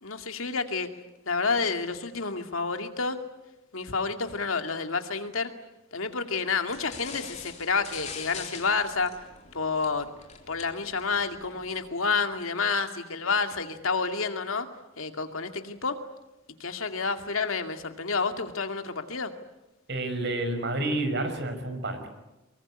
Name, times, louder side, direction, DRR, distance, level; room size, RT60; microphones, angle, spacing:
voice 1, 0.0-0.9 1.3-3.2 3.7-5.5 5.9-9.1 9.5-10.1 10.5-14.7 15.0-16.0 16.6-19.3, left 4 dB, 80° left, 6 dB, 2.3 m, -29 dB
sound 1, 6.7-12.0, left 6 dB, 35° left, 3.4 m, -44 dB
voice 2, 19.9-22.1, right 2 dB, 55° right, 7 dB, 5.2 m, -29 dB
24.5 x 23.0 x 9.9 m, 1.0 s
head